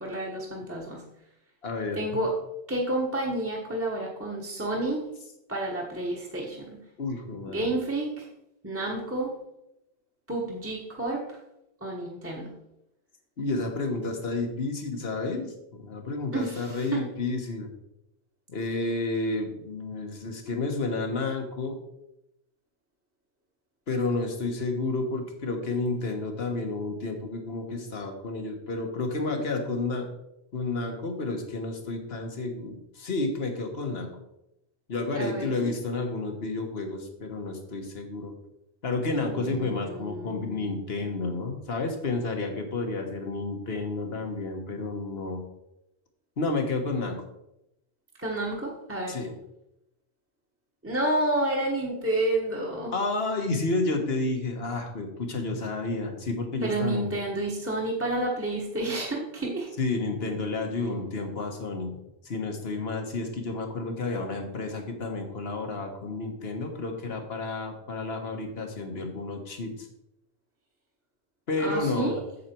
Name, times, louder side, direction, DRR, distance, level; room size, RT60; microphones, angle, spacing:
voice 1, 0.0-1.0 1.9-2.3 2.7-5.0 5.5-6.8 7.5-8.3 8.6-9.3 10.3-11.4 11.8-12.5 16.3-17.0 35.1-35.7 39.4-41.0 48.2-49.2 50.8-52.9 56.6-59.7 71.6-72.2, right 1 dB, 15° right, -3 dB, 1.3 m, -30 dB
voice 2, 1.6-2.0 7.0-7.7 13.4-17.7 18.5-21.8 23.9-30.1 30.5-34.1 34.9-38.3 38.8-45.4 46.4-47.2 49.1-49.4 52.9-57.1 59.8-61.9 62.2-69.9 71.5-72.2, left 3 dB, 70° left, 4 dB, 1.6 m, -31 dB
8.4 x 7.4 x 4.5 m, 0.84 s
omnidirectional pair, 1.1 m